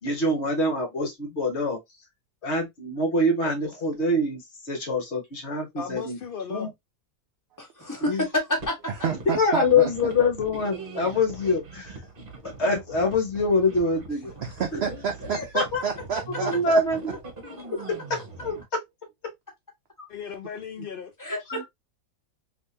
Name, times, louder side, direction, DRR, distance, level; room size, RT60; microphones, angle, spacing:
voice 1, 0.0-1.8 2.4-6.2 6.5-6.7 8.0-8.3 9.3-12.0 12.6-14.3 14.7-14.8 15.3-15.8 16.4-17.2 18.1-18.5 20.0-20.1 21.5-21.6, left 2 dB, 50° left, 1.2 m, -25 dB
voice 2, 5.8-6.7 20.1-21.1, left 6 dB, 85° left, 0.4 m, -36 dB
voice 3, 7.6-8.8 21.2-21.4, left 1 dB, 15° left, 1.2 m, -27 dB
sound 1, 8.6-18.6, right 3 dB, 40° right, 1.1 m, -42 dB
voice 4, 9.0-9.9 14.4-16.8 21.5-21.7, right 7 dB, 70° right, 0.6 m, -29 dB
3.5 x 2.8 x 2.7 m
omnidirectional pair, 1.6 m